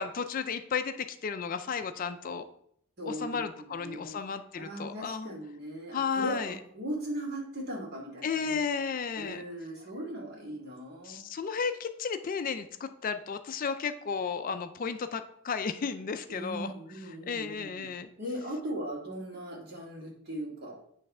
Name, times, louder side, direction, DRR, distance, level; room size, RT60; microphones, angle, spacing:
voice 1, 0.0-2.4 3.1-5.3 5.9-6.6 8.2-9.4 11.0-16.7 17.3-18.1, left 6 dB, 40° left, 10 dB, 0.3 m, -33 dB
voice 2, 3.0-4.2 4.6-8.6 9.2-11.2 16.3-17.9 18.2-20.8, right 1 dB, 50° right, -2 dB, 2.0 m, -38 dB
8.8 x 3.3 x 5.4 m, 0.70 s
head